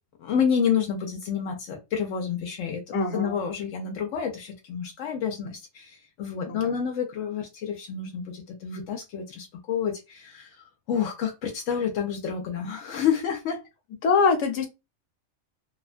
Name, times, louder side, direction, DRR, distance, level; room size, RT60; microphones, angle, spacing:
voice 1, 0.2-10.5 10.9-13.6, left 7 dB, 90° left, 1.0 m, -29 dB
voice 2, 2.9-3.4 6.5-6.8 14.0-14.7, left 4 dB, 70° left, 1.1 m, -24 dB
2.8 x 2.1 x 2.4 m
omnidirectional pair, 1.3 m